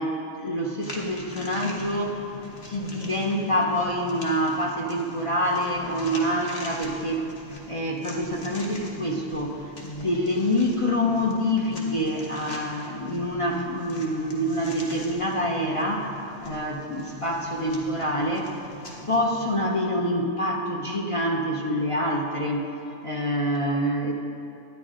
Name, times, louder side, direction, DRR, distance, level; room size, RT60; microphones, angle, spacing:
voice 1, 0.0-2.3 2.7-7.3 7.7-18.5 19.1-22.7 23.0-24.1, equal, 35° left, -2 dB, 0.6 m, -26 dB
sound 1, 0.8-19.6, left 2 dB, 55° left, 1.4 m, -42 dB
11.5 x 9.8 x 3.7 m, 2.7 s
omnidirectional pair, 1.3 m